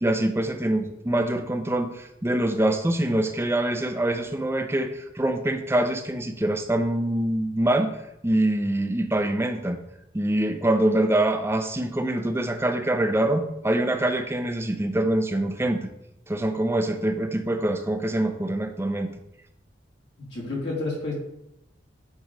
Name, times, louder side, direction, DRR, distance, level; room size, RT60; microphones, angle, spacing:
voice 1, 0.0-8.0 8.2-9.8 10.1-15.9 16.3-19.1, right 1 dB, 15° right, 6 dB, 0.5 m, -24 dB
voice 2, 20.2-21.1, left 2 dB, 70° left, -4 dB, 2.2 m, -30 dB
8.0 x 3.0 x 5.0 m, 0.83 s
head